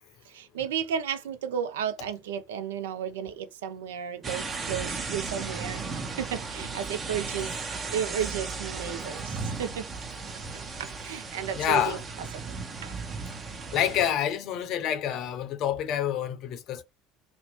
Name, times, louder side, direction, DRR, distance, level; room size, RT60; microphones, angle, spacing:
voice 1, 0.3-7.6 7.9-9.9 10.5-12.0 12.3-12.6 12.8-13.0, right 8 dB, 75° right, 0.4 m, -33 dB
sound 1, 4.2-14.1, right 4 dB, 30° right, 0.7 m, -35 dB
voice 2, 11.6-12.0 13.7-16.8, left 10 dB, 55° left, 0.6 m, -27 dB
2.7 x 2.0 x 2.8 m
figure-of-eight pair, 65°, 0 cm